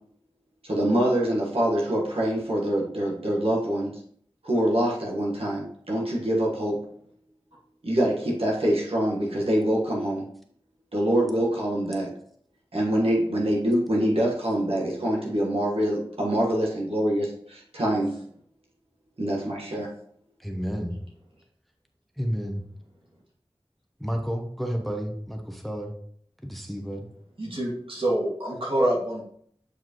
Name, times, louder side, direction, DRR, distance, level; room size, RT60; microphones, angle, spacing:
voice 1, 0.6-3.9 4.4-6.8 7.8-10.2 10.9-12.1 12.7-18.1 19.2-19.9, right 1 dB, 85° right, -3 dB, 1.4 m, -25 dB
voice 2, 20.4-21.0 22.2-22.6 24.0-25.9 26.4-27.1, equal, ahead, 3 dB, 0.9 m, -31 dB
voice 3, 27.4-29.2, right 1 dB, 65° right, -5 dB, 2.3 m, -26 dB
7.7 x 4.7 x 3.0 m, 0.63 s
wide cardioid pair, 55°, 10 cm